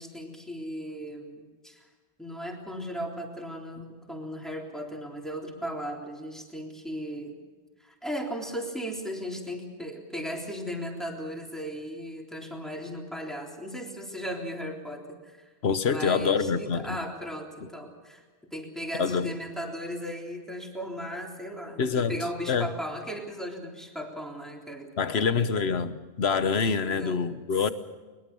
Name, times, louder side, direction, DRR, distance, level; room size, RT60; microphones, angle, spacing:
voice 1, 0.0-1.8 2.2-7.4 7.8-15.5 15.9-18.2 18.5-24.9 25.1-25.6 26.8-27.2, equal, ahead, 0 dB, 3.6 m, -36 dB
voice 2, 15.6-17.0 17.6-17.7 19.0-19.3 21.8-22.7 25.0-27.7, left 5 dB, 75° left, 12 dB, 1.3 m, -26 dB
22.0 x 21.5 x 7.0 m, 1.4 s
omnidirectional pair, 1.1 m